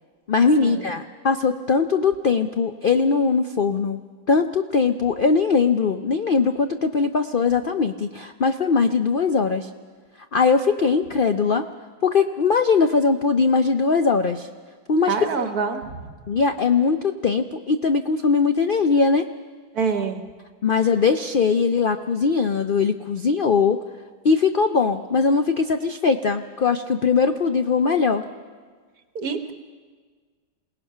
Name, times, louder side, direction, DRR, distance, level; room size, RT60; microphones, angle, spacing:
voice 1, 0.3-4.0 4.3-9.7 10.3-11.6 12.0-14.5 14.9-15.5 16.3-19.3 20.6-23.8 24.2-28.2, left 5 dB, 65° left, 7 dB, 0.5 m, -20 dB
voice 2, 15.1-16.1 19.7-20.2 29.2-29.5, right 5 dB, 65° right, 6 dB, 1.7 m, -26 dB
28.0 x 18.0 x 5.6 m, 1.5 s
omnidirectional pair, 1.8 m